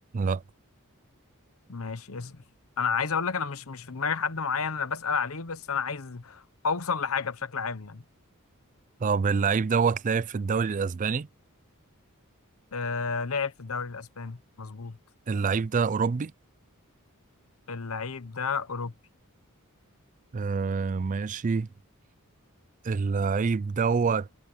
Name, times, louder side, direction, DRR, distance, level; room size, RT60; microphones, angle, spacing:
voice 1, 1.7-2.4 2.8-8.0 12.7-15.0 17.7-18.9, left 5 dB, 70° left, 1.0 m, -31 dB
voice 2, 9.0-11.3 15.3-16.3 20.3-21.7 22.8-24.3, right 5 dB, 35° right, 0.4 m, -26 dB
head